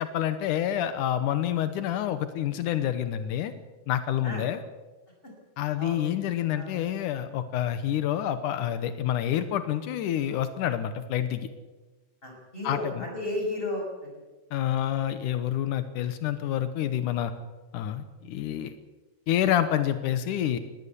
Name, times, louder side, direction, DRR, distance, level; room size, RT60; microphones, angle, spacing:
voice 1, 0.0-3.5 3.9-4.6 5.6-11.5 12.6-13.0 14.5-17.3 17.7-18.7 19.3-20.6, left 11 dB, 85° left, 10 dB, 2.5 m, -28 dB
voice 2, 12.2-13.8, left 1 dB, 15° left, 1 dB, 6.4 m, -33 dB
20.0 x 16.5 x 8.4 m, 1.2 s
omnidirectional pair, 3.6 m